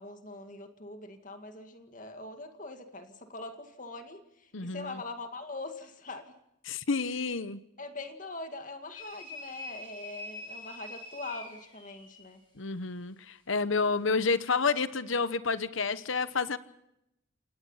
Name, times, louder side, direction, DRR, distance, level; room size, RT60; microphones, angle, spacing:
voice 1, 0.0-6.4 7.1-7.3 7.8-12.4, left 2 dB, 40° left, 7 dB, 2.0 m, -43 dB
voice 2, 4.5-5.0 6.7-7.6 12.6-16.6, left 4 dB, 75° left, 14 dB, 1.0 m, -29 dB
sound 1, 8.9-12.3, left 1 dB, 25° left, 7.3 m, -44 dB
28.5 x 19.0 x 5.7 m, 0.82 s
head